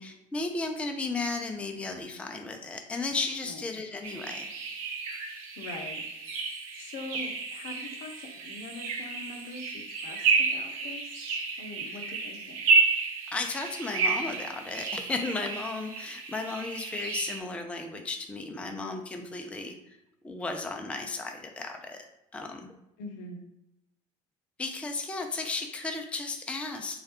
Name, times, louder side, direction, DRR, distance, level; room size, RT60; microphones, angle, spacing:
voice 1, 0.0-4.5 11.9-12.0 13.3-20.0 20.2-22.0 22.3-22.7 24.6-27.0, left 3 dB, 5° left, 4 dB, 0.4 m, -34 dB
sound 1, 4.0-17.4, right 4 dB, 70° right, 0.6 m, -31 dB
voice 2, 5.6-6.0 6.7-12.7 23.0-23.4, left 2 dB, 60° left, 3 dB, 0.6 m, -43 dB
3.1 x 2.3 x 2.9 m, 0.86 s
figure-of-eight pair, 60°, 18 cm